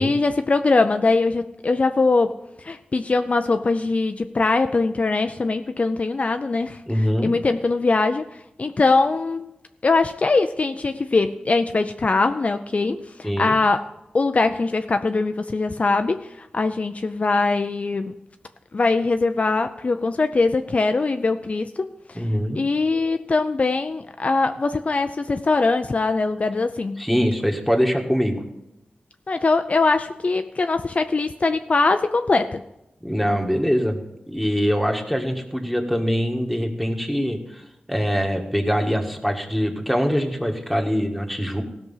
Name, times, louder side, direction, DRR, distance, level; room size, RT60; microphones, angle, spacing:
voice 1, 0.0-2.3 2.6-6.8 7.2-8.3 8.6-9.5 9.8-13.8 14.1-18.1 18.7-22.2 22.6-27.0 29.3-32.6, left 3 dB, 45° left, 8 dB, 0.5 m, -22 dB
voice 2, 6.9-7.3 13.2-13.6 22.1-22.6 27.0-28.4 33.0-34.0 34.3-41.6, equal, ahead, 2 dB, 1.7 m, -23 dB
16.0 x 6.2 x 5.6 m, 0.89 s
wide cardioid pair, 75°, 3 cm